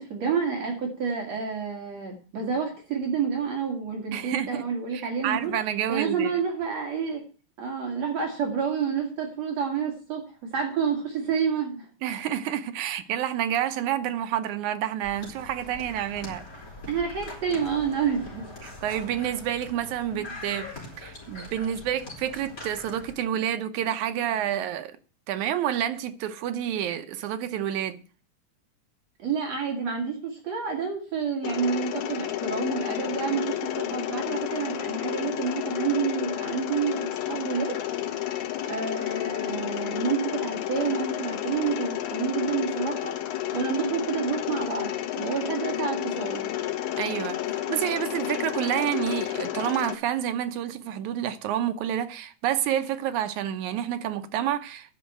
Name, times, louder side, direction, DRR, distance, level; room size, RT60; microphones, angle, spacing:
voice 1, 0.0-5.5 5.9-7.2 7.6-10.2 10.5-11.9 16.9-18.5 20.1-20.2 29.2-37.8 38.7-43.2 43.5-46.4, right 6 dB, 60° right, 3.3 m, -29 dB
voice 2, 4.1-4.6 4.9-6.3 12.0-16.4 18.6-20.7 21.0-25.0 25.3-28.0 47.0-47.4 47.7-55.0, right 10 dB, 80° right, 2.2 m, -29 dB
sound 1, 15.0-23.1, left 2 dB, 25° left, 4.8 m, -42 dB
Mechanisms, 31.4-50.0, left 12 dB, 80° left, 2.4 m, -31 dB
10.0 x 6.5 x 9.0 m
omnidirectional pair, 3.4 m